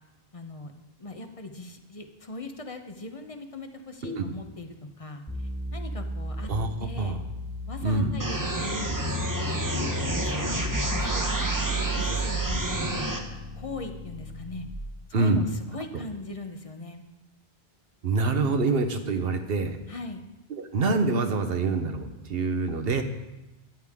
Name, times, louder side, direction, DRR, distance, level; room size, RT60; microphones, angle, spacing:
voice 1, 0.3-0.7 1.0-6.5 6.8-7.2 7.7-11.3 11.7-13.1 13.5-14.7 15.1-17.0 19.9-20.2, left 2 dB, 35° left, 6 dB, 0.9 m, -40 dB
voice 2, 4.0-4.3 6.5-6.7 7.0-7.2 7.8-8.1 15.1-15.4 18.0-19.8 20.5-23.0, right 3 dB, 65° right, 7 dB, 1.1 m, -25 dB
sound 1, 5.3-14.9, right 1 dB, 15° left, 1.9 m, -34 dB
sound 2, 8.2-13.2, right 1 dB, 20° right, 1.0 m, -30 dB
13.5 x 10.0 x 3.6 m, 1.0 s
omnidirectional pair, 1.1 m